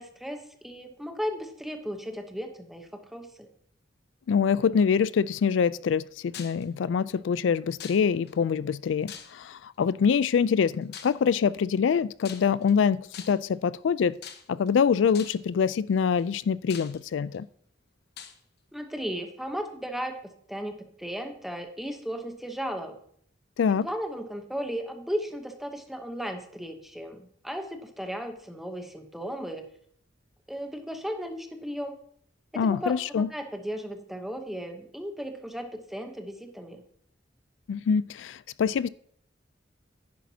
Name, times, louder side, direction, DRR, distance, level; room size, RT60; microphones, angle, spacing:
voice 1, 0.0-3.5 18.7-23.0 23.8-29.7 30.5-32.0 32.5-36.8, equal, ahead, 0.9 m, -35 dB
voice 2, 4.3-14.2 14.5-17.5 23.6-23.9 32.6-33.3 37.7-38.9, left 6 dB, 75° left, 0.3 m, -25 dB
sound 1, 6.3-6.6 7.8-8.3 9.1-9.6 10.9-11.2 12.2-12.7 13.1-13.5 14.2-14.7 15.1-15.5 16.2-16.3 16.7-17.4 18.2-18.4, left 8 dB, 60° left, 0.9 m, -43 dB
10.5 x 10.0 x 2.8 m
head